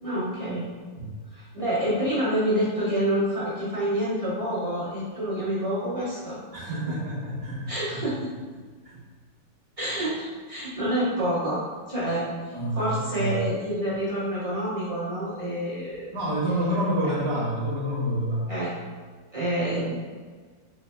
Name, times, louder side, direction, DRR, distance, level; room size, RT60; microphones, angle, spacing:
voice 1, 0.0-0.7 1.3-6.4 6.9-7.0 7.7-8.3 9.8-11.6 11.9-16.1 17.2-17.3 18.5-18.7 19.3-20.1, right 1 dB, 20° right, -10 dB, 1.3 m, -28 dB
voice 2, 6.5-8.0 12.5-13.4 16.1-18.5, right 1 dB, 40° right, -7 dB, 1.0 m, -28 dB
4.8 x 3.7 x 2.2 m, 1.5 s
omnidirectional pair, 1.9 m